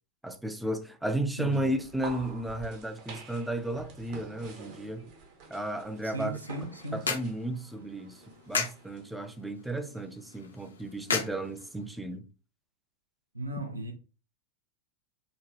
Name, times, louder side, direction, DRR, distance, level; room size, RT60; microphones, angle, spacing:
voice 1, 0.2-5.1 5.5-6.4 6.9-12.3, right 1 dB, 5° right, 0.4 m, -34 dB
sound 1, 1.4-9.0, right 4 dB, 45° right, 0.7 m, -48 dB
voice 2, 1.4-1.7 6.0-7.1 13.3-13.9, right 1 dB, 80° right, 0.5 m, -36 dB
sound 2, 6.2-12.1, left 5 dB, 75° left, 0.5 m, -37 dB
3.0 x 2.1 x 2.7 m
figure-of-eight pair, 90°, 0 cm